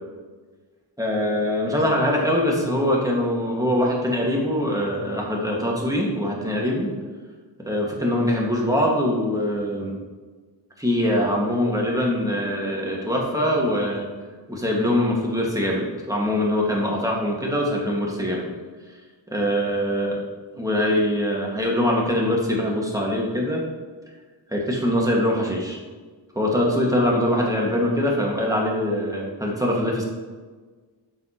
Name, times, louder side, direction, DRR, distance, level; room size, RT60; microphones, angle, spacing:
voice 1, 1.0-6.9 7.7-9.9 10.8-14.1 14.5-18.5 19.3-20.2 20.6-23.6 24.5-25.8 26.4-30.0, left 1 dB, 10° right, -3 dB, 2.0 m, -23 dB
7.7 x 7.2 x 3.1 m, 1.4 s
wide cardioid pair, 55°, 43 cm